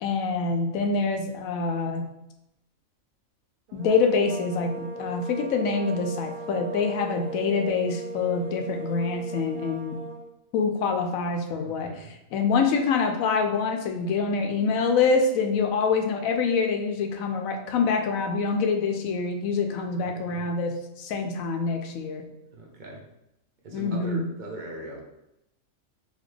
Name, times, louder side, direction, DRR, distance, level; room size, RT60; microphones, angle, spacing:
voice 1, 0.0-2.0 3.7-10.0 10.5-11.9 12.3-22.2 23.7-24.3, left 4 dB, 80° left, 4 dB, 1.0 m, -25 dB
sound 1, 3.7-10.3, right 2 dB, 85° right, 0.4 m, -38 dB
voice 2, 11.5-12.1 20.0-20.5 22.5-23.1 23.6-25.0, right 2 dB, 40° right, -1 dB, 0.8 m, -41 dB
4.0 x 2.9 x 3.2 m, 0.85 s
omnidirectional pair, 1.4 m